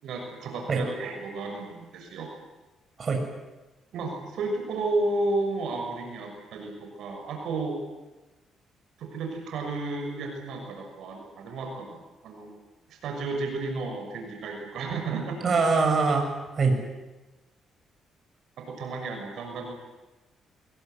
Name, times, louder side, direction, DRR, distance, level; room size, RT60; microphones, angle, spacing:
voice 1, 0.0-2.3 3.9-7.8 9.0-12.0 12.2-12.5 12.9-15.5 18.6-19.7, right 3 dB, 75° right, 3 dB, 6.4 m, -32 dB
voice 2, 15.4-16.8, right 4 dB, 45° right, 3 dB, 7.2 m, -23 dB
23.0 x 22.0 x 9.4 m, 1.1 s
cardioid pair, 90°, 0 cm